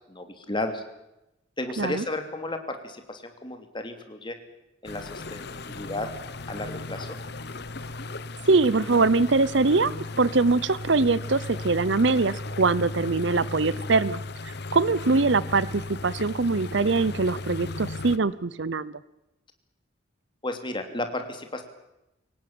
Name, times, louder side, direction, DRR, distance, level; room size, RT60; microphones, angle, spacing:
voice 1, 0.1-0.8 1.6-4.4 4.8-6.1 6.5-7.2 20.4-21.6, left 2 dB, 25° left, 6 dB, 3.0 m, -33 dB
sound 1, 4.8-18.2, left 2 dB, 60° left, 1.3 m, -36 dB
voice 2, 8.5-9.9 10.2-19.0, right 3 dB, 65° right, 19 dB, 0.8 m, -23 dB
24.0 x 18.5 x 8.9 m, 0.90 s
head